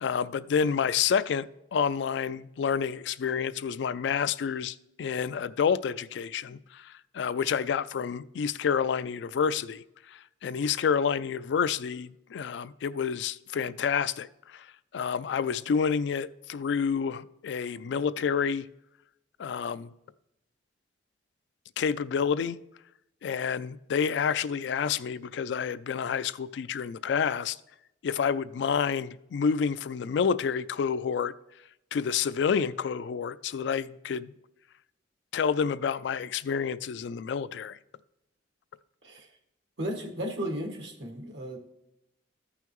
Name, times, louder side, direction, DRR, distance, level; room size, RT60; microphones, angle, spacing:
voice 1, 0.0-14.7 14.9-18.7 19.4-19.9 21.8-22.6 23.2-27.6 28.0-31.3 31.9-34.3 35.3-37.8, left 6 dB, 70° left, 0.3 m, -29 dB
voice 2, 39.8-41.6, equal, 80° right, 1.5 m, -34 dB
13.5 x 5.6 x 3.1 m
head